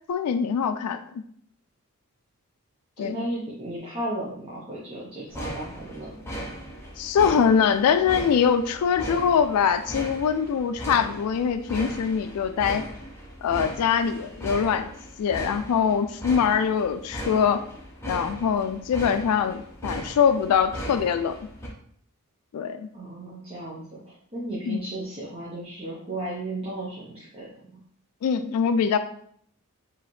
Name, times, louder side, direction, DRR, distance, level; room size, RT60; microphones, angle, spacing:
voice 1, 0.1-1.2 3.0-3.3 7.0-12.9 13.4-14.9 15.2-17.6 18.1-21.4 22.5-22.9 24.7-24.8 28.2-29.0, left 7 dB, 90° left, 9 dB, 0.3 m, -23 dB
voice 2, 3.0-6.4 22.9-27.8, right 1 dB, 25° right, -7 dB, 0.9 m, -35 dB
sound 1, 5.3-21.7, equal, 10° left, 0.8 m, -38 dB
4.8 x 3.0 x 3.1 m, 0.63 s
head